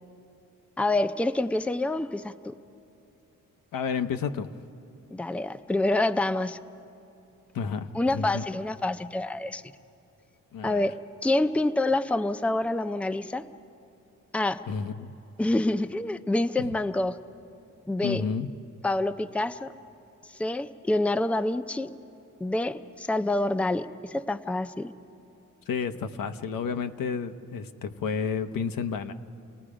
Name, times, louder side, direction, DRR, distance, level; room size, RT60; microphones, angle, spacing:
voice 1, 0.8-2.5 5.1-6.6 7.9-9.6 10.6-11.0 11.2-13.4 14.3-14.6 15.4-17.2 17.9-18.2 18.8-19.7 20.3-21.9 22.4-24.9, left 2 dB, 5° left, 10 dB, 0.5 m, -27 dB
voice 2, 3.7-4.5 7.5-8.4 10.5-10.9 14.7-15.1 18.0-18.5 25.7-29.1, left 6 dB, 80° left, 8 dB, 0.9 m, -31 dB
29.5 x 18.0 x 5.0 m, 2.8 s
cardioid pair, 85°, 33 cm